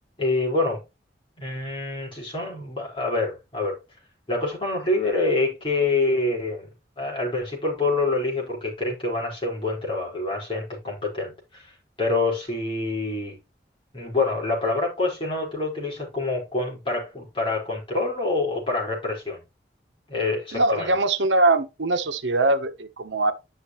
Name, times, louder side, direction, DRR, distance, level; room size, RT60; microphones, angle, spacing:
voice 1, 0.2-0.8 1.4-3.8 4.3-6.7 7.0-11.7 12.0-13.3 13.9-19.4 20.1-20.9, left 3 dB, 30° left, 4.7 m, -26 dB
voice 2, 20.5-23.3, right 2 dB, 85° right, 1.0 m, -22 dB
10.5 x 6.6 x 3.1 m
head